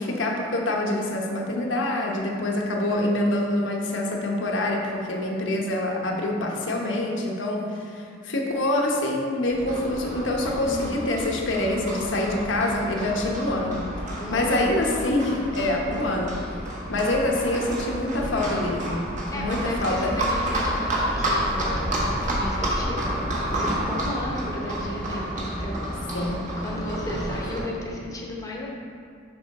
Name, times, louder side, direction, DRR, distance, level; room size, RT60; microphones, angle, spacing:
voice 1, 0.0-16.3 16.9-19.0 19.3-20.1 26.1-26.5 27.6-27.7, left 1 dB, 80° left, 0 dB, 1.0 m, -26 dB
Livestock farm animals working animals, 9.5-27.6, right 1 dB, 40° right, 1.4 m, -30 dB
voice 2, 10.6-11.0 14.2-14.8 19.3-26.2 26.6-28.7, left 1 dB, 20° left, -2 dB, 0.9 m, -34 dB
6.9 x 5.7 x 4.2 m, 2.3 s
head